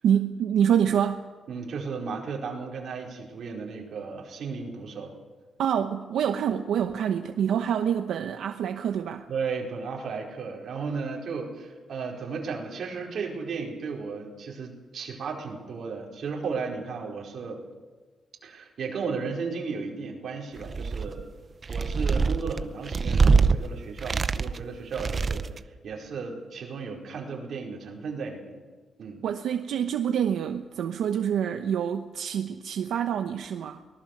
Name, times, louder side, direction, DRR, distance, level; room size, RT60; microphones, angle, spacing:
voice 1, 0.0-1.2 5.6-9.2 29.2-33.8, right 8 dB, 85° right, 6 dB, 1.0 m, -26 dB
voice 2, 1.5-5.2 9.3-17.6 18.4-21.2 21.7-25.5 25.8-28.6 29.0-29.2, right 5 dB, 55° right, -1 dB, 4.9 m, -34 dB
sound 1, 20.6-21.2 21.6-23.5 24.0-24.6 24.9-25.6, right 4 dB, 30° right, 0.7 m, -23 dB
24.0 x 19.0 x 6.8 m, 1.3 s
wide cardioid pair, 160°, 0 cm